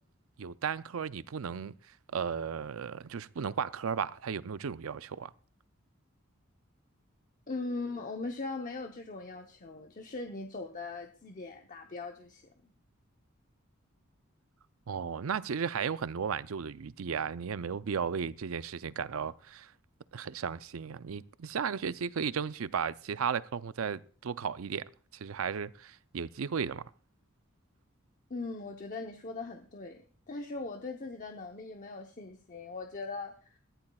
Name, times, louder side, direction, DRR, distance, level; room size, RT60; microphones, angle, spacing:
voice 1, 0.4-1.7 2.1-5.3 14.9-19.7 20.1-24.9 25.1-26.9, right 6 dB, 80° right, 0.5 m, -35 dB
voice 2, 7.5-12.7 28.3-30.0 30.3-33.6, left 3 dB, 40° left, 0.8 m, -40 dB
20.5 x 15.0 x 2.3 m
head